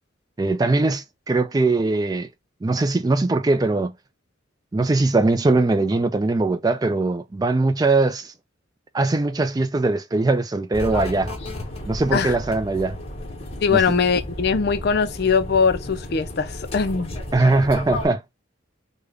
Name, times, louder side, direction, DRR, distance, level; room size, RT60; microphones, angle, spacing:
voice 1, 0.4-2.3 2.6-3.9 4.7-8.3 8.9-11.3 11.9-13.0 13.7-13.8 17.3-18.2, right 2 dB, 20° right, 0.3 m, -21 dB
sound 1, 10.7-18.1, left 1 dB, 30° left, 1.2 m, -33 dB
voice 2, 13.6-17.1, left 5 dB, 55° left, 0.4 m, -21 dB
3.5 x 2.1 x 3.2 m
head